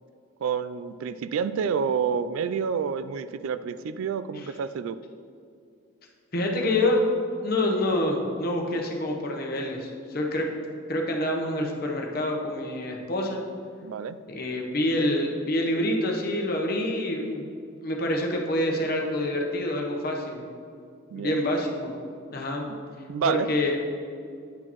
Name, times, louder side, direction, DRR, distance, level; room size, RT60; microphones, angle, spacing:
voice 1, 0.4-5.0 13.8-14.2 21.1-21.4 23.1-23.5, right 6 dB, 80° right, 14 dB, 0.3 m, -28 dB
voice 2, 6.3-7.0 7.4-10.5 10.9-13.4 14.3-17.5 17.8-20.4 21.1-21.9 22.3-22.7 23.2-23.8, left 1 dB, 45° left, 1 dB, 0.9 m, -27 dB
9.7 x 6.2 x 3.0 m, 2.3 s
head